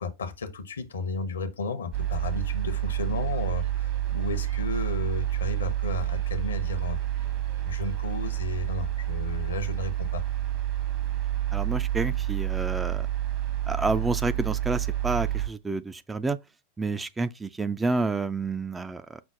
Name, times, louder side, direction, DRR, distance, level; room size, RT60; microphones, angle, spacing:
voice 1, 0.0-7.0 7.6-10.2, left 4 dB, 70° left, 0.7 m, -33 dB
sound 1, 1.9-15.5, right 13 dB, 40° right, 1.0 m, -29 dB
sound 2, 2.9-8.6, right 2 dB, 65° right, 2.7 m, -57 dB
voice 2, 11.5-13.1 13.7-16.4 16.8-19.2, right 3 dB, 10° right, 0.3 m, -29 dB
6.0 x 2.0 x 3.6 m
figure-of-eight pair, 90°, 0 cm